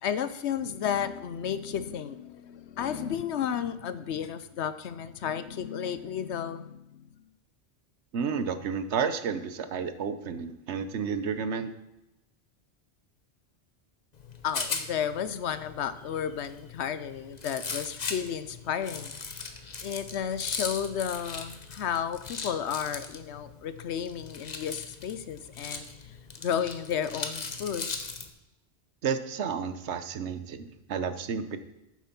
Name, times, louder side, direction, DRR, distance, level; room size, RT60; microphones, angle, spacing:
voice 1, 0.0-7.1 14.4-19.4 19.8-27.9, left 8 dB, 85° left, 13 dB, 1.0 m, -33 dB
voice 2, 8.1-11.7 29.0-31.6, right 6 dB, 85° right, 11 dB, 1.1 m, -31 dB
Rattle, 14.1-28.3, left 4 dB, 40° left, 1.0 m, -39 dB
9.1 x 7.5 x 5.9 m, 0.94 s
omnidirectional pair, 1.1 m